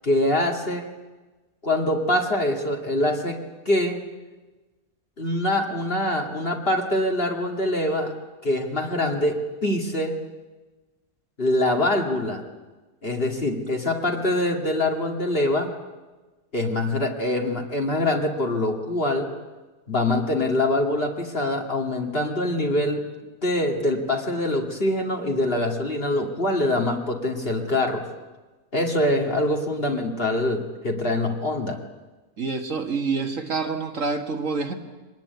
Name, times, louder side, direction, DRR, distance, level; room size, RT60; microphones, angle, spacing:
voice 1, 0.0-0.8 1.6-3.4 3.7-4.0 5.2-8.1 8.4-10.2 11.4-12.4 13.0-15.7 16.5-19.3 19.9-23.0 23.4-28.1 28.7-31.8, left 1 dB, 40° left, 2 dB, 2.5 m, -24 dB
voice 2, 32.4-34.7, right 4 dB, 55° right, 4 dB, 2.1 m, -27 dB
24.0 x 19.5 x 9.5 m, 1.2 s
omnidirectional pair, 1.6 m